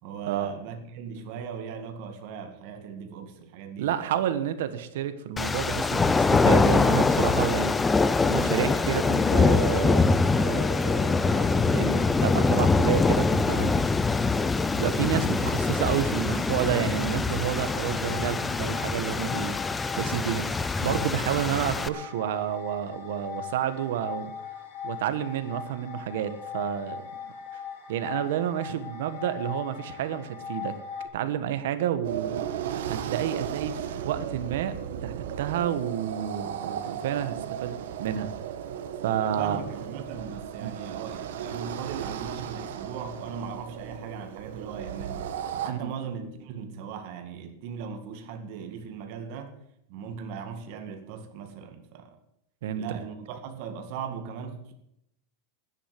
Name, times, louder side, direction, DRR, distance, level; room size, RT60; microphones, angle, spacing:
voice 1, 0.0-4.2 39.1-45.3 45.6-49.6 49.9-52.2 52.8-54.7, right 6 dB, 45° right, 2.0 m, -38 dB
voice 2, 3.8-6.0 6.3-7.8 8.3-11.1 11.4-13.8 14.7-19.6 20.0-24.3 24.8-27.0 27.5-27.6 27.9-30.7 31.1-32.4 32.9-33.8 34.0-37.7 38.0-38.3 39.0-39.6 40.6-40.8 45.7-45.9 52.6-52.8, right 10 dB, 70° right, 1.3 m, -30 dB
sound 1, 5.4-21.9, left 4 dB, 10° left, 0.4 m, -24 dB
sound 2, 17.6-31.1, left 7 dB, 55° left, 3.7 m, -40 dB
sound 3, 32.0-45.7, right 9 dB, 85° right, 1.4 m, -35 dB
11.5 x 9.9 x 7.7 m
supercardioid pair, 175°, 0 cm